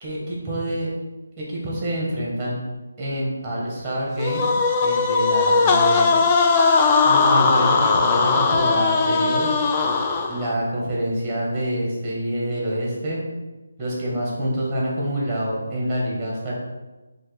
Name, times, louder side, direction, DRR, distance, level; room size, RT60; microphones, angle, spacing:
voice 1, 0.0-0.9 1.4-2.6 3.0-4.5 4.8-6.2 7.0-9.5 10.3-13.2 13.8-16.5, right 1 dB, 5° right, -5 dB, 1.0 m, -26 dB
sound 1, 4.2-10.5, left 4 dB, 20° left, 0.3 m, -19 dB
5.5 x 2.5 x 3.2 m, 1.2 s
figure-of-eight pair, 155°, 0 cm